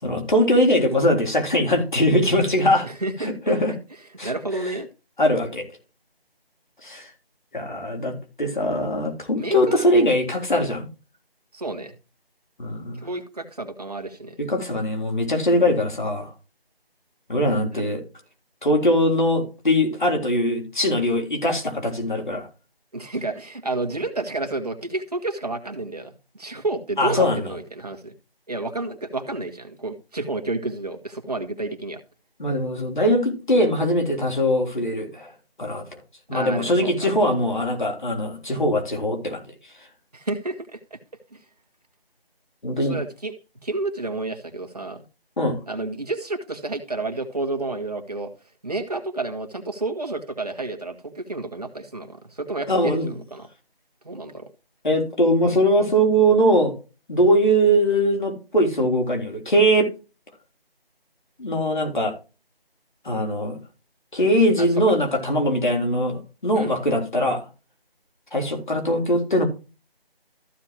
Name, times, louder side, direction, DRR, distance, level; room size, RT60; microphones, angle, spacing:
voice 1, 0.0-2.9 3.2-3.7 4.2-4.3 5.2-5.6 6.8-7.1 7.5-10.9 12.6-13.0 14.4-16.3 17.3-18.0 18.6-22.5 27.0-27.4 32.4-35.3 35.6-36.0 36.3-39.4 42.6-43.0 45.4-45.6 52.7-53.1 54.8-56.7 57.1-59.9 61.4-62.1 63.1-63.6 64.1-67.4 68.3-69.5, equal, 50° left, 3.6 m, -21 dB
voice 2, 2.8-3.5 4.2-4.9 9.4-10.1 11.5-11.9 13.0-14.4 17.8-17.9 22.9-28.1 28.5-32.0 36.3-37.1 40.1-41.0 41.3-41.4 42.8-43.3 43.6-45.0 45.7-48.3 48.6-53.5 54.0-54.5 64.6-64.7 66.5-66.8, right 2 dB, 40° right, 1.8 m, -30 dB
14.5 x 6.5 x 3.0 m
figure-of-eight pair, 175°, 30 cm